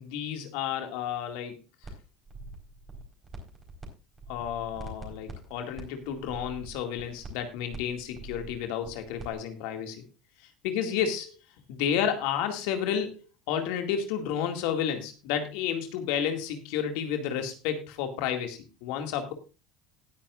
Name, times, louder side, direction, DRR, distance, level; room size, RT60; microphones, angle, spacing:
voice 1, 0.0-1.6 1.8-1.9 4.3-10.0 10.6-11.3 11.7-13.2 13.5-19.3, left 8 dB, 75° left, 5 dB, 2.2 m, -31 dB
sound 1, 1.8-2.0 2.3-3.9 4.1-9.3, right 3 dB, 25° right, 4.5 m, -44 dB
18.5 x 9.0 x 2.5 m, 0.30 s
supercardioid pair, 100°, 0 cm